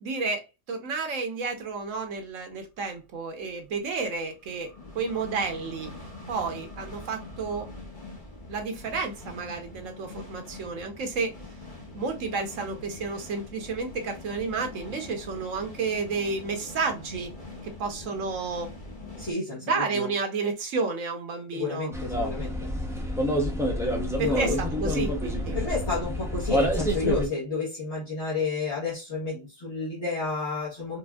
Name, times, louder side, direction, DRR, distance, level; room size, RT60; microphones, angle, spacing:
voice 1, 0.0-5.9 6.3-7.7 8.5-11.3 11.9-17.3 17.6-18.7 19.6-21.9 24.2-25.6, right 4 dB, 75° right, 1.3 m, -31 dB
sound 1, 1.9-2.0 3.5-19.3, left 2 dB, 40° left, 1.2 m, -43 dB
voice 2, 19.2-20.1 21.5-22.7 24.2-24.6 25.5-31.0, left 4 dB, 55° left, 1.5 m, -31 dB
sound 2, 21.9-27.3, equal, 5° right, 0.4 m, -27 dB
4.6 x 2.5 x 2.3 m
omnidirectional pair, 1.4 m